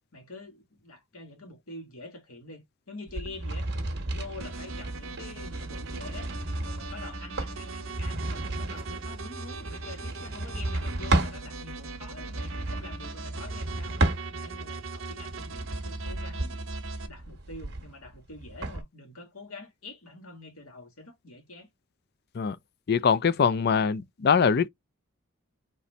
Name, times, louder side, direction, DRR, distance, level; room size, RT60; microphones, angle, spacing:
voice 1, 0.1-3.7 4.1-6.3 6.6-14.0 14.3-16.5 17.1-21.7, left 2 dB, 90° left, 2.0 m, -46 dB
sound 1, 3.1-11.4 12.2-14.7 15.2-18.8, right 2 dB, 50° right, 1.3 m, -33 dB
sound 2, 4.4-17.1, right 3 dB, 65° right, 1.0 m, -39 dB
voice 2, 22.9-24.7, left 6 dB, 50° left, 0.4 m, -23 dB
4.2 x 3.0 x 4.0 m
head